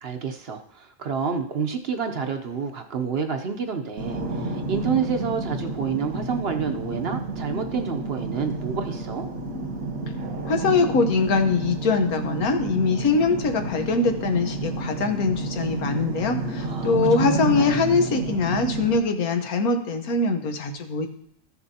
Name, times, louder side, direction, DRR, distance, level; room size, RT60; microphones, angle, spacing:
voice 1, 0.0-9.3 16.6-17.7, right 6 dB, 55° right, 5 dB, 0.8 m, -29 dB
sound 1, 4.0-19.0, right 3 dB, 85° right, 1.8 m, -30 dB
voice 2, 10.4-21.1, left 4 dB, 90° left, 6 dB, 1.4 m, -23 dB
14.0 x 6.9 x 2.8 m, 0.70 s
omnidirectional pair, 1.5 m